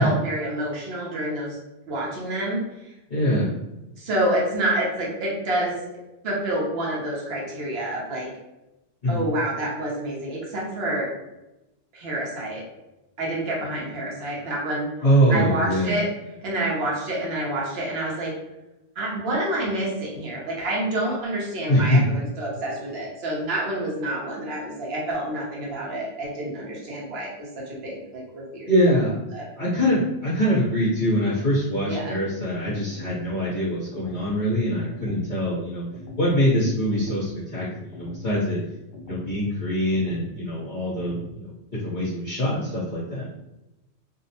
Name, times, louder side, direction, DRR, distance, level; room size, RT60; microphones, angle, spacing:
voice 1, 0.0-1.6 1.9-2.6 4.0-5.8 6.2-8.3 9.1-11.1 11.9-12.6 13.2-14.9 15.3-16.1 16.4-18.3 19.0-28.7 29.3-29.5 31.8-32.2, right 1 dB, 55° right, -3 dB, 0.9 m, -28 dB
voice 2, 3.1-3.6 9.0-9.2 15.0-16.0 21.7-22.2 28.7-29.2 29.6-35.8 36.2-38.6 39.0-41.5 41.8-43.2, equal, 45° left, -10 dB, 0.9 m, -23 dB
sound 1, 32.9-33.3 33.9-34.3 34.9-35.3 35.9-36.3 36.9-37.3 37.9-38.3 38.9-39.3 39.9-40.3 40.9-41.3, left 3 dB, 65° left, 0.4 m, -40 dB
2.6 x 2.0 x 2.8 m, 0.97 s
omnidirectional pair, 1.3 m